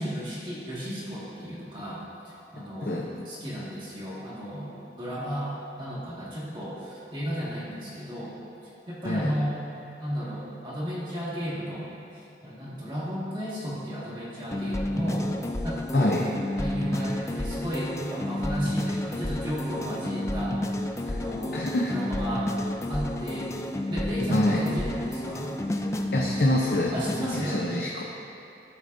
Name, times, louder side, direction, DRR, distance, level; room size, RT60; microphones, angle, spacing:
voice 1, 0.0-4.7 5.0-8.4 8.9-9.6 10.0-11.9 12.4-15.3 15.6-16.2 16.6-20.7 21.0-22.5 22.9-23.5 23.9-25.5 26.9-27.8, equal, 25° right, -8 dB, 1.8 m, -33 dB
sound 1, 14.5-27.4, left 1 dB, 15° left, 0.4 m, -31 dB
voice 2, 15.9-16.2 21.1-21.2 21.5-22.0 24.3-24.6 26.1-26.9 27.3-28.0, left 1 dB, 60° left, -2 dB, 0.7 m, -25 dB
13.0 x 8.7 x 2.7 m, 2.7 s
head